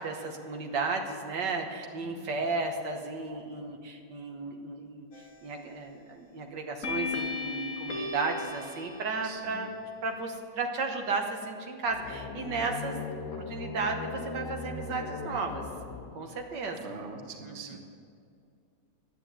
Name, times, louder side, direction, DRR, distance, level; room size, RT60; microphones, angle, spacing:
voice 1, 0.0-5.1 5.4-9.7 10.0-13.0 13.4-15.7 16.1-16.9 17.4-17.8, right 3 dB, 75° right, 3 dB, 1.8 m, -34 dB
sound 1, 5.1-5.6 6.8-9.6, left 3 dB, 50° left, 1.5 m, -36 dB
voice 2, 9.2-9.7 16.8-17.8, right 4 dB, 45° right, 3 dB, 1.5 m, -44 dB
sound 2, 11.9-16.6, left 4 dB, 80° left, 1.6 m, -39 dB
11.5 x 9.3 x 8.7 m, 2.4 s
omnidirectional pair, 1.9 m